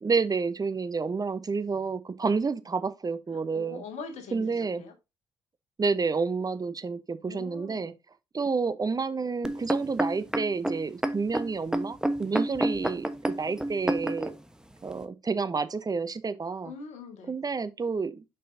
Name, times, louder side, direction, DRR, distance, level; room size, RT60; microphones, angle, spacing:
voice 1, 0.0-3.8 4.3-4.8 5.8-7.9 8.3-13.1 13.4-14.3 14.8-16.7 17.3-18.2, right 4 dB, 30° right, 0.9 m, -29 dB
voice 2, 3.3-4.9 7.2-7.9 16.6-17.3, left 4 dB, 65° left, 1.9 m, -43 dB
sound 1, 9.4-14.3 15.0-15.1, right 1 dB, 5° right, 1.1 m, -28 dB
7.0 x 5.5 x 2.7 m
hypercardioid pair, 45°, 13 cm